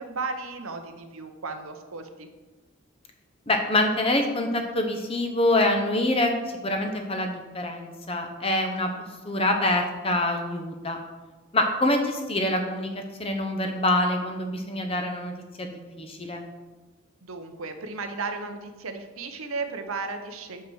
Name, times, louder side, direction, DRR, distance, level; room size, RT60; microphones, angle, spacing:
voice 1, 0.0-2.3 17.2-20.6, right 4 dB, 75° right, 7 dB, 0.8 m, -34 dB
voice 2, 3.5-6.3 6.6-8.9 9.2-11.0 11.5-16.4, left 1 dB, 25° left, 4 dB, 0.8 m, -25 dB
5.9 x 5.7 x 6.3 m, 1.2 s
head